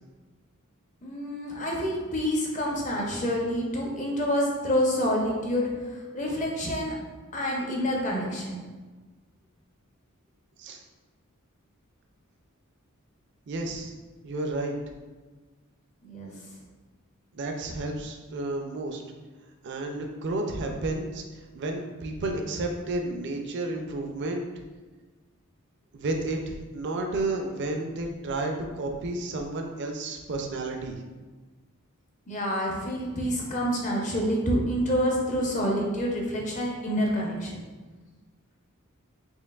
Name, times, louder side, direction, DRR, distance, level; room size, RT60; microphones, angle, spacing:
voice 1, 1.0-6.9 7.3-8.6 16.0-16.3 32.3-37.6, equal, 35° left, -2 dB, 0.7 m, -27 dB
voice 2, 13.5-13.9 14.2-14.7 17.3-19.0 19.6-21.2 21.5-24.5 25.9-31.0, right 2 dB, 55° right, 3 dB, 0.4 m, -31 dB
4.4 x 2.8 x 2.3 m, 1.3 s
head